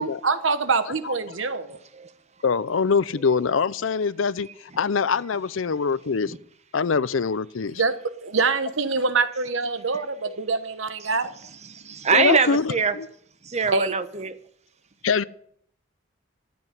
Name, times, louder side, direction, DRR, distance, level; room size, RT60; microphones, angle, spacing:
voice 1, 0.0-1.8 7.8-8.0 8.2-11.3 13.7-13.9, right 4 dB, 70° right, 1.2 m, -25 dB
voice 2, 2.4-4.5 4.8-6.3 6.7-7.8 10.3-10.4 12.1-12.6 12.9-13.1 15.0-15.2, left 5 dB, 75° left, 0.6 m, -23 dB
voice 3, 11.6-13.0 13.4-14.4, right 5 dB, 35° right, 1.0 m, -23 dB
13.5 x 7.8 x 9.8 m
head